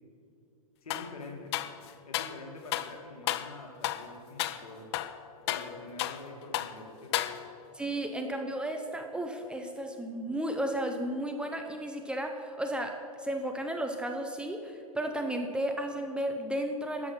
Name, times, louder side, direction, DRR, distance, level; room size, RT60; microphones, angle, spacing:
voice 1, 0.8-1.5 2.1-4.9 5.5-7.3, left 2 dB, 75° left, 1 dB, 2.0 m, -46 dB
sound 1, 0.9-1.1 1.5-2.4 2.7-2.9 3.3-3.5 3.8-4.1 4.4-4.6 4.9-6.3 6.5-6.8 7.1-7.7, left 13 dB, 45° left, 0.5 m, -33 dB
voice 2, 7.7-17.1, right 1 dB, 5° right, 4 dB, 0.6 m, -34 dB
12.0 x 6.5 x 5.9 m, 2.7 s
hypercardioid pair, 115°, 19 cm